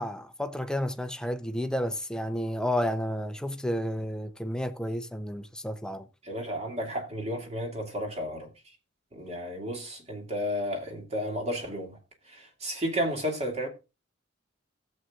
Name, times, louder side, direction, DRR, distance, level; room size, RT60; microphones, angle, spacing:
voice 1, 0.0-6.1, equal, 5° left, 0.7 m, -31 dB
voice 2, 6.2-8.5 9.1-12.0 12.3-13.7, equal, 35° right, 2.4 m, -32 dB
16.0 x 7.7 x 2.5 m
head